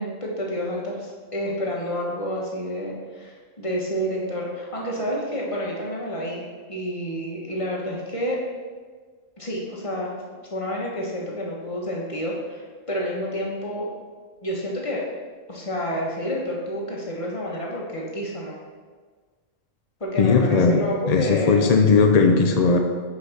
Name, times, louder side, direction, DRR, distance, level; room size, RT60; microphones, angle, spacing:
voice 1, 0.0-8.4 9.4-10.2 10.5-13.9 14.4-15.1 15.5-18.6 20.0-21.7, equal, 25° left, -3 dB, 1.4 m, -29 dB
voice 2, 20.2-22.8, left 4 dB, 65° left, 3 dB, 0.4 m, -18 dB
5.8 x 5.0 x 5.7 m, 1.5 s
omnidirectional pair, 1.3 m